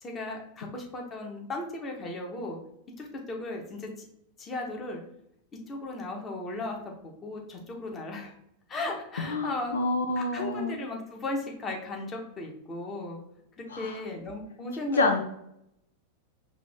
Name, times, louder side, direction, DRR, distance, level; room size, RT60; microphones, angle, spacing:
voice 1, 0.0-2.6 3.0-3.9 4.4-5.0 5.7-6.8 7.0-8.3 8.7-9.8 10.1-13.2 13.6-15.1, left 2 dB, 25° left, 1 dB, 1.2 m, -36 dB
voice 2, 9.3-10.8 13.7-13.9 15.0-15.2, left 2 dB, 70° left, 5 dB, 0.4 m, -27 dB
4.9 x 2.7 x 3.4 m, 0.77 s
figure-of-eight pair, 90°, 0 cm